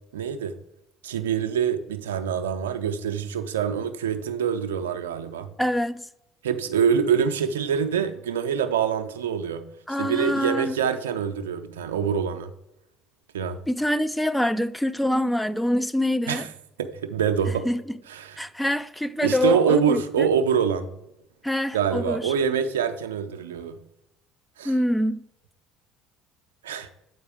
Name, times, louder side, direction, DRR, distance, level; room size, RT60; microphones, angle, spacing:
voice 1, 0.1-0.5 1.0-5.5 6.4-9.7 10.0-12.5 13.3-13.6 16.3-16.5 16.8-17.7 18.1-18.4 19.2-20.9 21.7-23.8 24.6-24.7 26.6-26.9, right 7 dB, 75° right, 0.5 m, -25 dB
voice 2, 5.6-6.1 9.9-10.7 13.7-16.4 17.7-17.8 18.4-20.3 21.4-22.3 24.6-25.2, left 1 dB, 5° left, 0.4 m, -25 dB
7.8 x 4.7 x 4.8 m
figure-of-eight pair, 60°, 0 cm